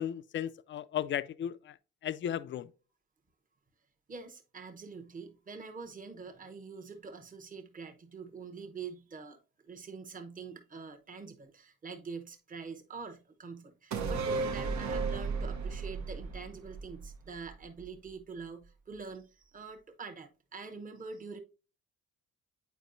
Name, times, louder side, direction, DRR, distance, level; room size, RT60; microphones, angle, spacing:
voice 1, 0.0-1.7 2.0-2.7, left 10 dB, 40° left, 0.4 m, -35 dB
voice 2, 4.1-9.4 9.6-21.4, right 5 dB, 25° right, 0.9 m, -45 dB
sound 1, 13.9-17.5 17.8-17.9, right 4 dB, 65° right, 0.9 m, -34 dB
8.2 x 4.6 x 2.6 m
cardioid pair, 90°, 30 cm